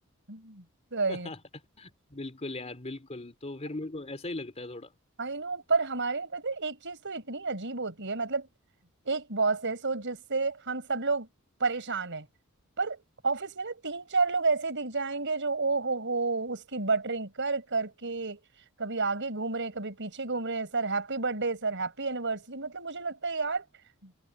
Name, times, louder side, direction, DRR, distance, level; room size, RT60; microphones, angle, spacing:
voice 1, 0.3-0.6 0.9-1.3 5.2-8.5 9.0-11.3 11.6-12.3 12.8-18.4 18.8-23.6 24.0-24.1, right 4 dB, 60° right, 5.8 m, -30 dB
voice 2, 1.1-1.4 1.8-4.9, left 2 dB, 30° left, 2.8 m, -38 dB
head